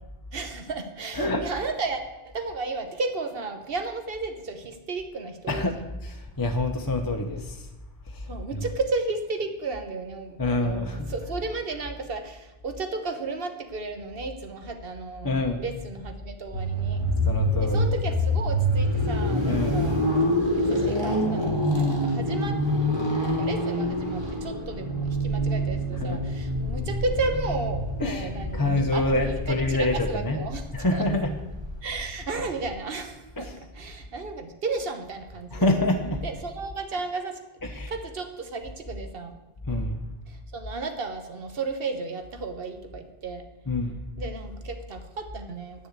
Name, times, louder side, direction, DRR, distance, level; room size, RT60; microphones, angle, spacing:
voice 1, 0.3-5.9 8.3-10.8 11.1-15.3 15.6-17.0 17.6-20.0 20.5-22.6 23.2-28.6 28.9-30.6 30.9-31.1 31.8-35.7 36.2-37.4 37.9-39.3 40.3-43.4 44.2-45.9, right 3 dB, 65° right, 7 dB, 1.4 m, -33 dB
voice 2, 1.1-1.6 5.5-7.6 8.1-8.3 8.5-8.7 10.4-11.1 15.2-15.6 17.2-17.9 19.4-19.9 25.9-26.2 28.0-31.4 33.4-33.6 35.5-36.2 37.6-38.0 39.7-40.0 43.7-44.0, left 2 dB, 20° left, 2 dB, 0.8 m, -27 dB
sound 1, 16.5-32.7, equal, 25° right, 2.1 m, -27 dB
9.7 x 6.8 x 8.1 m, 1.1 s
omnidirectional pair, 1.0 m